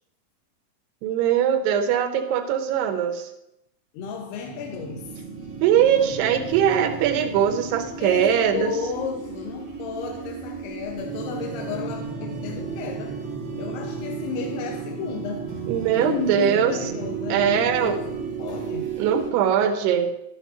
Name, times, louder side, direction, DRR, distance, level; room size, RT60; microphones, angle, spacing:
voice 1, 1.0-3.3 5.6-8.7 15.7-16.8 17.3-18.0 19.0-20.1, right 9 dB, 85° right, 7 dB, 2.8 m, -21 dB
voice 2, 3.9-5.1 8.0-13.2 13.6-15.5 16.0-18.9, left 6 dB, 85° left, 2 dB, 2.8 m, -33 dB
sound 1, 4.5-19.3, right 5 dB, 35° right, 2.3 m, -34 dB
11.0 x 9.6 x 3.0 m, 0.84 s
omnidirectional pair, 4.6 m